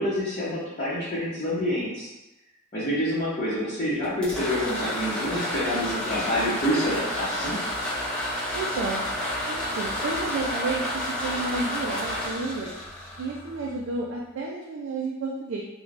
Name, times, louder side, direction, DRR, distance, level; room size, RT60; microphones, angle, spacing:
voice 1, 0.0-2.1 2.7-7.6, equal, 35° left, -12 dB, 0.7 m, -27 dB
sound 1, 4.0-13.8, left 1 dB, 5° left, 0.4 m, -30 dB
voice 2, 8.5-9.0 9.5-12.7 13.2-15.6, right 3 dB, 60° right, -2 dB, 0.3 m, -31 dB
3.2 x 2.1 x 2.5 m, 0.99 s
head